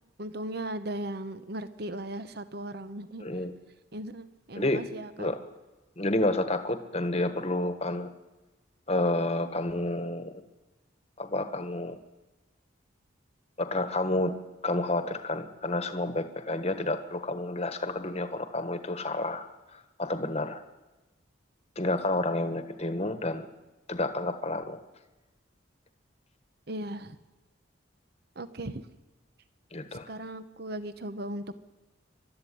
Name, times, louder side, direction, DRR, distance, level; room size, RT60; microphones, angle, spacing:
voice 1, 0.2-3.3 3.9-5.3 26.7-27.2 28.4-28.9 30.1-31.5, right 1 dB, 55° right, 12 dB, 0.9 m, -37 dB
voice 2, 3.2-3.5 4.5-4.8 5.2-5.5 6.0-8.1 8.9-10.4 11.2-12.0 13.6-14.4 14.6-19.4 19.7-20.6 21.8-23.5 23.9-24.8 29.7-30.1, left 2 dB, 30° left, 9 dB, 1.3 m, -30 dB
23.5 x 12.5 x 10.0 m, 1.1 s
head